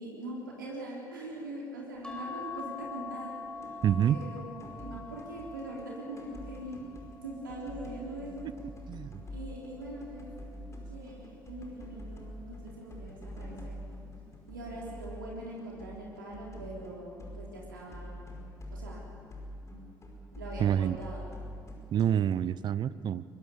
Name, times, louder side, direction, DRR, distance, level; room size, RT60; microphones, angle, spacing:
voice 1, 0.0-3.3 4.0-6.9 7.2-8.5 9.3-10.3 10.7-13.8 14.5-18.2 18.7-19.0 20.3-21.4, right 1 dB, 80° right, -3 dB, 3.5 m, -42 dB
sound 1, 2.0-8.7 9.3-10.7 11.9-12.4 12.7-12.8, left 4 dB, 10° left, 5.2 m, -45 dB
sound 2, 3.6-4.3 4.6-5.9 6.2-22.4, equal, 25° left, 5.3 m, -45 dB
voice 2, 3.8-4.2 8.4-8.5 8.9-9.1 20.6-21.0 21.9-23.2, right 9 dB, 45° right, 17 dB, 0.7 m, -27 dB
23.5 x 22.5 x 7.0 m, 2.3 s
figure-of-eight pair, 50°, 11 cm